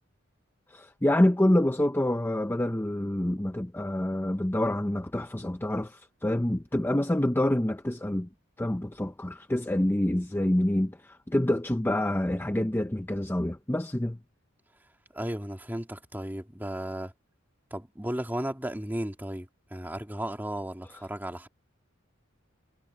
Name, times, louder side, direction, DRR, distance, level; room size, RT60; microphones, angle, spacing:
voice 1, 0.7-8.3 8.6-14.2, left 1 dB, 10° left, 0.6 m, -27 dB
voice 2, 15.1-17.1 17.7-21.5, right 1 dB, 10° right, 2.2 m, -35 dB
head